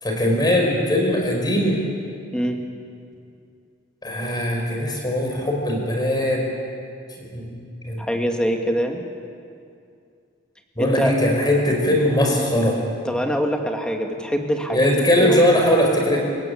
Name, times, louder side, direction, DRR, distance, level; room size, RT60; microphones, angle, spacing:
voice 1, 0.0-1.8 4.0-6.4 7.3-7.5 7.8-8.0 10.8-12.8 14.7-16.2, left 1 dB, 20° left, 0 dB, 5.2 m, -20 dB
voice 2, 8.0-9.0 10.8-11.2 13.0-14.9 15.2-15.4, equal, 5° left, 3 dB, 2.1 m, -23 dB
29.0 x 17.0 x 8.8 m, 2.4 s
head